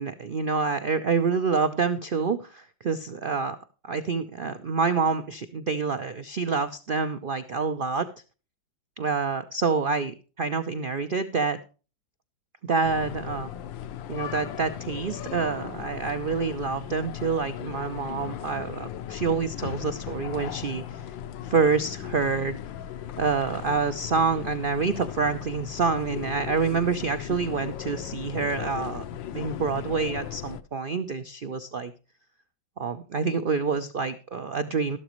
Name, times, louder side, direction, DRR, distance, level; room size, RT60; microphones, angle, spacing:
voice 1, 0.0-3.6 3.8-8.1 9.0-11.6 12.7-13.5 14.1-21.0 21.4-22.6 23.2-29.0 29.3-31.9 32.8-35.0, right 5 dB, 60° right, 10 dB, 0.5 m, -27 dB
sound 1, 12.8-30.6, left 10 dB, 90° left, 1.5 m, -37 dB
13.0 x 12.0 x 3.1 m, 0.35 s
omnidirectional pair, 2.0 m